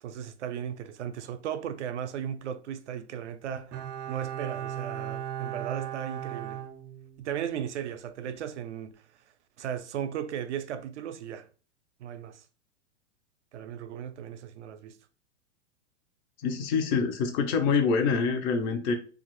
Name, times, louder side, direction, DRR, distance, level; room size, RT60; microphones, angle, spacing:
voice 1, 0.0-3.7 4.1-6.6 7.2-9.0 9.6-11.5 12.0-12.4 13.5-15.0, right 9 dB, 80° right, 0.5 m, -36 dB
Bowed string instrument, 3.7-7.5 7.8-7.9, right 10 dB, 30° right, 0.5 m, -37 dB
voice 2, 16.4-18.9, left 5 dB, 35° left, 0.6 m, -26 dB
2.5 x 2.4 x 3.0 m
hypercardioid pair, 115°, 34 cm